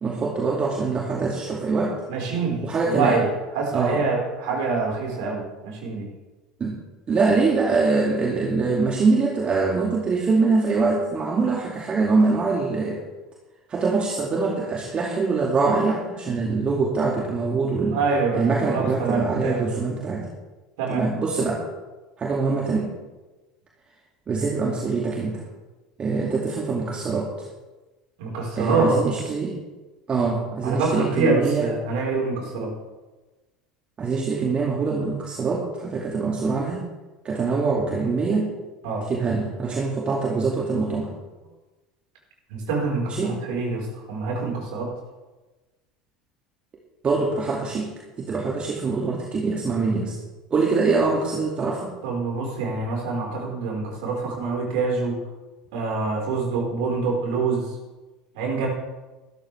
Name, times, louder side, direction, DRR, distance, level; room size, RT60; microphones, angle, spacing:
voice 1, 0.0-2.0 2.6-3.2 3.7-4.0 6.6-6.7 7.1-13.0 13.7-18.0 18.3-20.3 20.9-21.6 22.2-22.9 24.3-25.4 26.0-27.3 28.6-29.6 30.1-31.7 34.0-36.8 37.2-38.5 39.1-41.1 43.1-43.4 47.0-47.9 48.2-50.2 50.5-51.9, right 4 dB, 30° right, -1 dB, 2.4 m, -23 dB
voice 2, 2.1-3.3 3.5-6.1 17.9-19.7 20.8-21.1 28.2-29.0 30.6-32.7 38.8-39.0 42.5-44.9 52.0-55.2 55.7-57.7 58.3-58.7, right 4 dB, 55° right, -1 dB, 4.8 m, -25 dB
20.0 x 13.0 x 3.5 m, 1.2 s
figure-of-eight pair, 70°, 4 cm